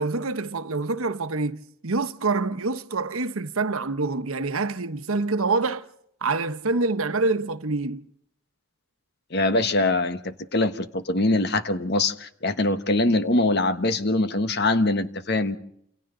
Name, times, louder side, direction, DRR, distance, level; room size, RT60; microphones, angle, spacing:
voice 1, 0.0-5.8 6.2-8.0, right 3 dB, 90° right, 1.1 m, -26 dB
voice 2, 9.3-15.6, left 2 dB, 50° left, 1.3 m, -23 dB
28.5 x 27.5 x 3.9 m
head